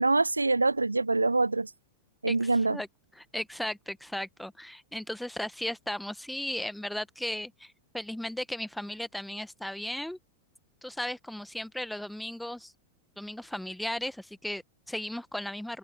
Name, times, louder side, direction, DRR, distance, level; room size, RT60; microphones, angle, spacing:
voice 1, 0.0-1.7 2.2-2.8, right 3 dB, 80° right, 0.7 m, -25 dB
voice 2, 2.3-2.9 3.2-10.2 10.8-12.7 13.2-15.8, left 1 dB, ahead, 1.4 m, -36 dB
figure-of-eight pair, 90°, 0 cm